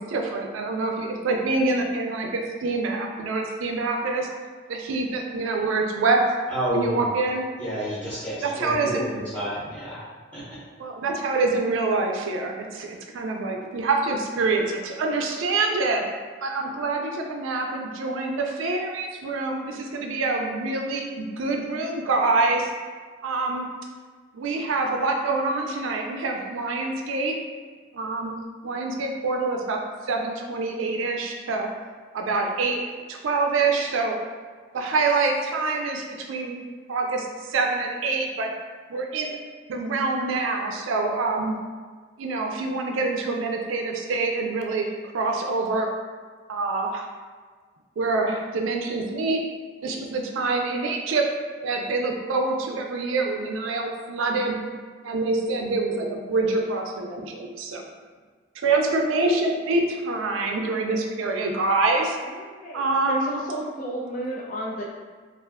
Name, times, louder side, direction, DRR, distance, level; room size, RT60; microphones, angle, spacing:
voice 1, 0.0-4.3 4.7-6.2 6.7-7.4 8.4-9.0 10.8-16.0 16.4-22.7 23.2-23.7 24.3-27.3 27.9-28.4 28.6-29.8 30.0-31.7 32.1-32.8 33.1-34.2 34.7-36.6 36.9-38.5 38.9-39.4 39.7-41.5 42.2-44.9 45.1-45.9 46.5-47.0 48.0-49.4 49.8-51.2 51.6-54.6 55.0-57.8 58.6-62.2 62.7-63.3, right 3 dB, 80° right, 2 dB, 0.4 m, -26 dB
voice 2, 6.5-7.0 7.6-10.0 10.3-10.4, right 1 dB, 5° left, -11 dB, 0.9 m, -29 dB
voice 3, 62.3-64.8, right 1 dB, 40° left, -3 dB, 0.4 m, -33 dB
2.4 x 2.2 x 3.4 m, 1.6 s
head